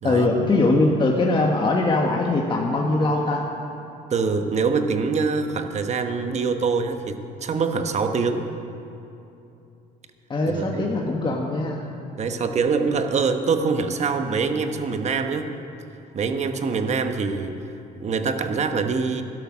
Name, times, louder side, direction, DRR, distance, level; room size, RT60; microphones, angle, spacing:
voice 1, 0.0-3.4 10.3-11.9, left 2 dB, 30° left, 0 dB, 1.2 m, -21 dB
voice 2, 4.1-8.5 10.5-10.9 12.2-15.5 16.1-17.6 18.0-19.2, right 5 dB, 40° right, 7 dB, 1.0 m, -24 dB
12.5 x 11.5 x 6.2 m, 2.8 s
cardioid pair, 110°, 17 cm